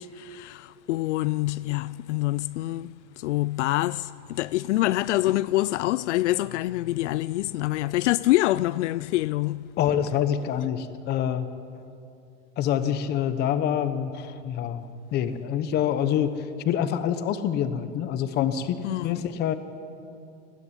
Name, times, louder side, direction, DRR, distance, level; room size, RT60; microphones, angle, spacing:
voice 1, 0.0-9.7 18.8-19.3, left 17 dB, 75° left, 0.5 m, -26 dB
voice 2, 9.8-11.5 12.6-16.3 16.6-19.5, left 9 dB, 30° left, 1.0 m, -26 dB
19.5 x 15.0 x 9.9 m
supercardioid pair, 155°, 35 cm